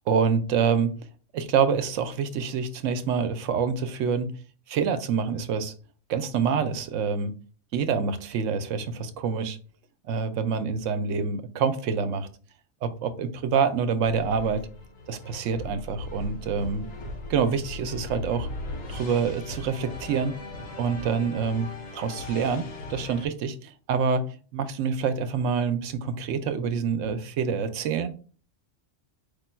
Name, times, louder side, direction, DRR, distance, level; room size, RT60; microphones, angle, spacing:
voice 1, 0.1-0.9 1.3-4.3 4.7-5.7 6.1-7.3 7.7-9.6 10.1-12.3 12.8-14.6 15.1-16.8 17.3-18.5 18.9-20.4 20.8-21.7 21.9-24.3 24.5-28.1, right 6 dB, 75° right, 0.9 m, -26 dB
sound 1, 14.0-23.3, left 2 dB, 65° left, 1.2 m, -38 dB
5.0 x 2.2 x 4.3 m
omnidirectional pair, 1.3 m